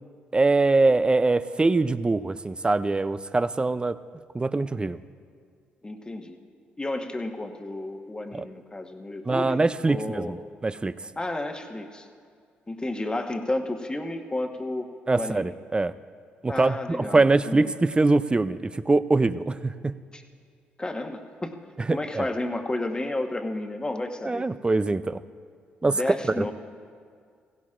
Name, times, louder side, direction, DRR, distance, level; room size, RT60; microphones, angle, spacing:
voice 1, 0.3-4.0 4.3-5.0 8.3-8.5 9.3-10.4 10.6-10.9 15.1-15.9 16.4-19.9 21.9-22.3 24.2-25.2 25.8-26.0 26.4-26.5, right 3 dB, 20° right, 14 dB, 0.5 m, -23 dB
voice 2, 5.8-6.4 6.8-10.3 11.2-12.1 12.7-15.5 16.5-17.6 20.1-20.2 20.8-21.6 21.9-24.5 25.8-26.5, left 2 dB, 20° left, 5 dB, 1.2 m, -32 dB
16.5 x 16.0 x 2.5 m, 2.1 s
supercardioid pair, 55°, 4 cm